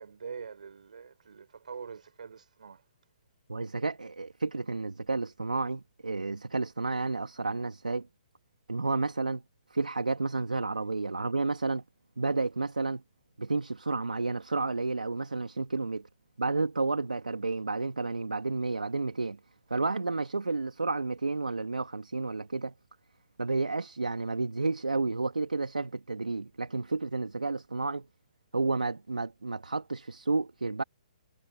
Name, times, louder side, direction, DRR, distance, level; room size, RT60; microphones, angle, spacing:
voice 1, 0.0-2.8, right 6 dB, 70° right, 5.3 m, -44 dB
voice 2, 3.5-8.1 8.7-9.4 9.7-11.8 12.2-13.0 13.4-16.1 16.4-19.4 19.7-22.7 23.4-28.1 28.5-30.8, right 3 dB, 85° right, 2.3 m, -31 dB
figure-of-eight pair, 135°, 4 cm